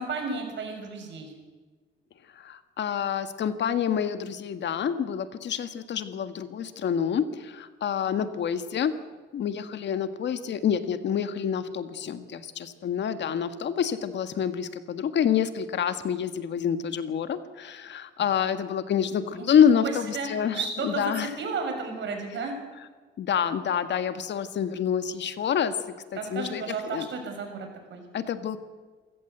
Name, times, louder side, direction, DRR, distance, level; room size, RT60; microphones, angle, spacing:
voice 1, 0.0-1.3 19.3-20.3 20.5-22.5 26.1-28.0, right 4 dB, 65° right, 3 dB, 6.5 m, -33 dB
voice 2, 2.3-8.9 9.3-21.3 23.2-25.7 26.1-27.1 28.1-28.6, left 8 dB, 65° left, 10 dB, 1.7 m, -27 dB
27.0 x 15.0 x 8.0 m, 1.4 s
cardioid pair, 90°, 20 cm